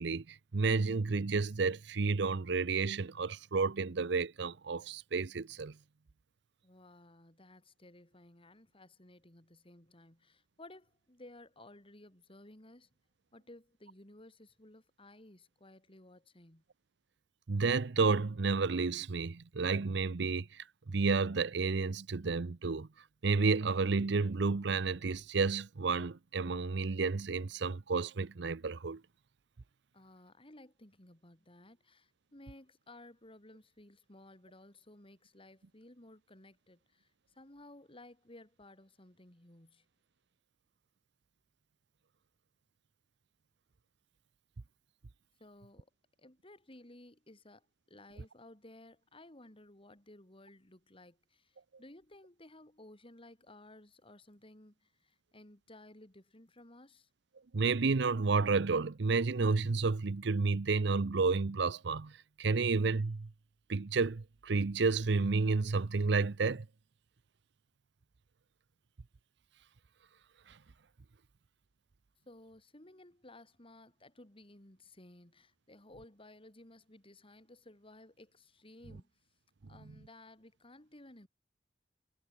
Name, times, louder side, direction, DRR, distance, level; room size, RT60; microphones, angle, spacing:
voice 1, 0.0-5.7 17.5-22.9 23.2-29.0 57.5-62.1 62.4-63.3 63.7-66.6, right 4 dB, 70° right, 0.7 m, -31 dB
voice 2, 6.6-12.9 13.3-16.6 29.9-39.9 45.4-45.9 46.2-57.1 72.3-79.1 79.7-81.3, left 1 dB, 30° left, 3.4 m, -57 dB
head